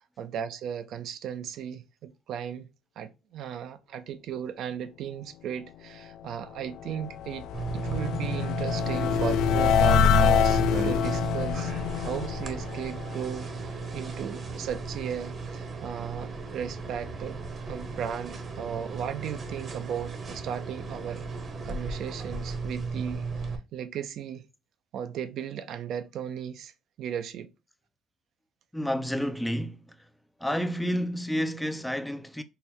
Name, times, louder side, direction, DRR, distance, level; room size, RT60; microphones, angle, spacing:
voice 1, 0.2-2.7 3.0-7.5 7.7-21.3 21.6-24.5 24.9-26.7 27.0-27.5, right 8 dB, 65° right, 0.5 m, -36 dB
sound 1, 6.5-13.7, left 7 dB, 75° left, 0.3 m, -25 dB
sound 2, 7.5-23.6, right 4 dB, 40° right, 0.9 m, -35 dB
voice 2, 28.7-30.0 30.4-32.4, equal, 5° left, 0.4 m, -30 dB
4.4 x 2.1 x 3.4 m
cardioid pair, 115°, 0 cm